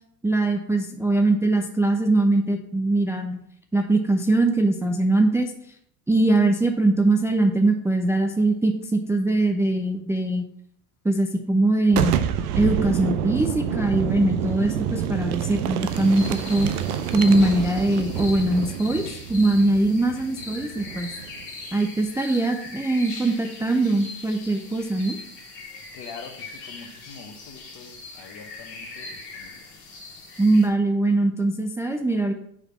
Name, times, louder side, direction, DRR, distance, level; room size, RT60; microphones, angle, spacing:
voice 1, 0.2-3.4 3.7-5.5 6.1-10.4 11.0-12.3 12.5-16.7 17.1-19.0 19.3-21.1 21.7-25.2 30.4-32.3, right 2 dB, 5° right, 3 dB, 0.4 m, -21 dB
Boom, 11.9-21.5, right 9 dB, 90° right, 0.5 m, -28 dB
sound 1, 15.9-30.7, left 3 dB, 70° left, 1.7 m, -40 dB
voice 2, 25.9-29.7, left 5 dB, 50° left, 6 dB, 1.1 m, -44 dB
5.0 x 3.4 x 5.5 m, 0.70 s
hypercardioid pair, 80°, 43 cm